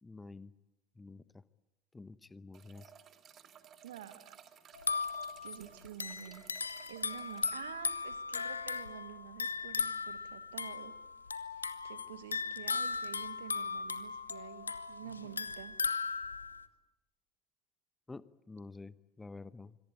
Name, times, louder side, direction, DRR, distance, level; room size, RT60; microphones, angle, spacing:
voice 1, 0.0-0.5 1.0-1.4 1.9-2.9 18.1-19.8, left 3 dB, 15° left, 17 dB, 1.0 m, -49 dB
sound 1, 2.5-7.6, right 8 dB, 40° right, 2.2 m, -57 dB
voice 2, 3.8-4.4 5.4-11.0 11.5-15.8, right 11 dB, 70° right, 14 dB, 1.5 m, -49 dB
sound 2, 4.7-16.7, left 5 dB, 85° left, 1.0 m, -37 dB
26.0 x 22.0 x 8.5 m, 0.94 s
figure-of-eight pair, 70°, 0 cm